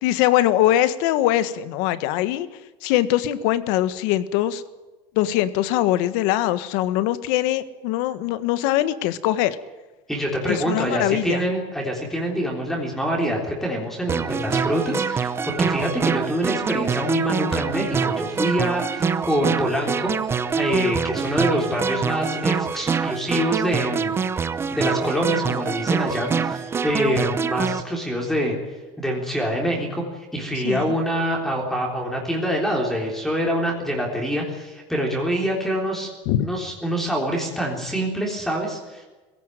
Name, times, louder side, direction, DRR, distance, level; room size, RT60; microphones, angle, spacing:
voice 1, 0.0-2.5 2.8-4.6 5.1-9.6 10.5-11.4 30.5-30.9 36.2-36.4, left 13 dB, 70° left, 13 dB, 1.6 m, -22 dB
voice 2, 10.1-20.1 20.5-24.1 24.7-28.5 29.0-36.1 36.4-39.0, equal, ahead, -1 dB, 3.6 m, -25 dB
sound 1, 14.1-27.8, right 6 dB, 15° right, 0.7 m, -25 dB
21.5 x 16.5 x 9.3 m, 1.2 s
cardioid pair, 165°, 14 cm